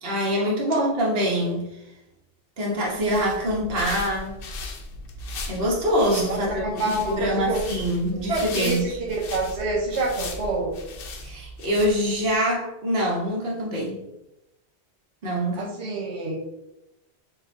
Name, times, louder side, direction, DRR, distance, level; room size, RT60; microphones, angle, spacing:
voice 1, 0.0-1.7 2.6-4.4 5.5-9.0 11.2-14.0 15.2-15.7, equal, 60° right, -3 dB, 1.2 m, -25 dB
sound 1, 2.8-12.3, left 2 dB, 65° left, 0.8 m, -37 dB
voice 2, 6.3-7.6 8.3-10.8 15.6-16.4, right 2 dB, 90° right, -1 dB, 1.2 m, -27 dB
6.5 x 2.4 x 2.6 m, 0.90 s
omnidirectional pair, 1.1 m